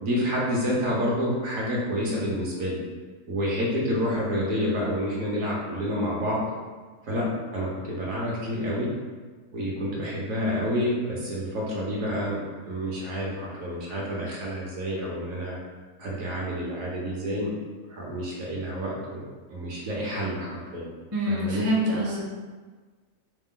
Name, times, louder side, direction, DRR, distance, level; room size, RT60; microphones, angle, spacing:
voice 1, 0.0-2.8 3.3-6.4 7.1-8.9 9.5-15.6 16.0-17.5 17.9-19.2 19.5-20.9 21.3-21.7, equal, 60° right, -4 dB, 1.1 m, -29 dB
voice 2, 21.1-22.2, equal, 15° right, -6 dB, 0.5 m, -25 dB
5.0 x 2.2 x 3.7 m, 1.4 s
omnidirectional pair, 1.7 m